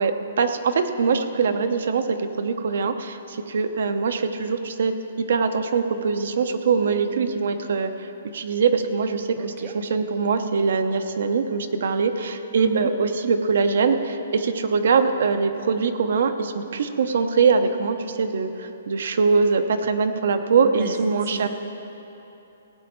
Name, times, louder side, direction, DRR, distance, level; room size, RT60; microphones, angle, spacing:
voice 1, 0.0-21.5, right 5 dB, 55° right, 8 dB, 0.7 m, -23 dB
voice 2, 9.4-9.7 12.6-12.9 20.8-20.9 21.3-21.5, right 9 dB, 15° right, 2 dB, 0.5 m, -32 dB
17.0 x 8.3 x 4.5 m, 3.0 s
hypercardioid pair, 180°, 0 cm